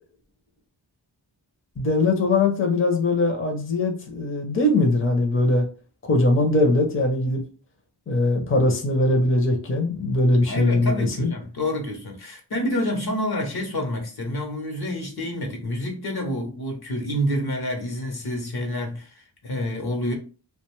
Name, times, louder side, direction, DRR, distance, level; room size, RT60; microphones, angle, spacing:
voice 1, 1.8-5.6 6.0-7.4 8.1-11.3, left 2 dB, 30° left, 0.6 m, -21 dB
voice 2, 10.4-20.1, left 1 dB, 60° left, 0.8 m, -28 dB
2.4 x 2.2 x 3.0 m
wide cardioid pair, 70°, 42 cm